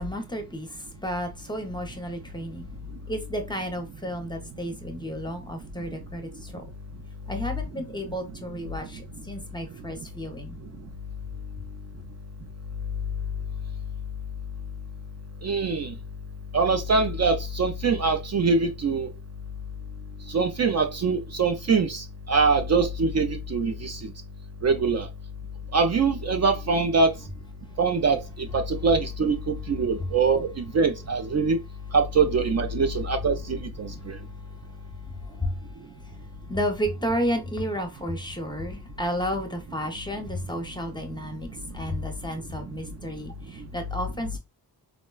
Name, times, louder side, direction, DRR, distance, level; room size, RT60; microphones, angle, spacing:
voice 1, 0.0-2.7 3.1-6.6 7.3-10.6 35.0-35.5 36.5-41.5 41.7-44.4, equal, 10° left, 0.6 m, -32 dB
voice 2, 15.4-15.9 16.5-19.1 20.3-24.1 24.6-25.1 25.7-27.1 27.8-31.6 31.9-34.2, right 4 dB, 45° right, 0.4 m, -23 dB
3.9 x 2.1 x 2.2 m
cardioid pair, 110°, 40 cm